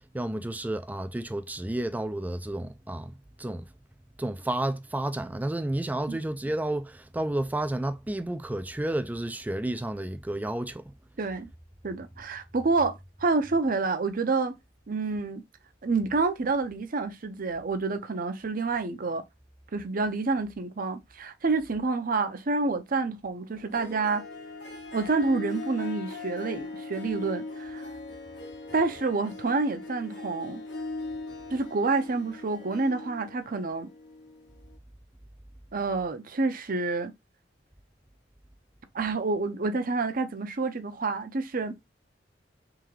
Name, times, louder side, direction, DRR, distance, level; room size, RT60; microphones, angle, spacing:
voice 1, 0.1-3.7 4.2-10.8, right 1 dB, 10° right, 0.4 m, -31 dB
voice 2, 11.2-11.5 11.8-14.6 14.9-15.4 15.8-19.2 19.7-24.2 24.9-27.9 28.7-30.6 31.5-33.9 35.7-37.1 38.9-41.8, right 3 dB, 50° right, 0.7 m, -28 dB
Harp, 23.6-34.8, left 2 dB, 85° left, 1.5 m, -40 dB
3.7 x 3.3 x 3.2 m
head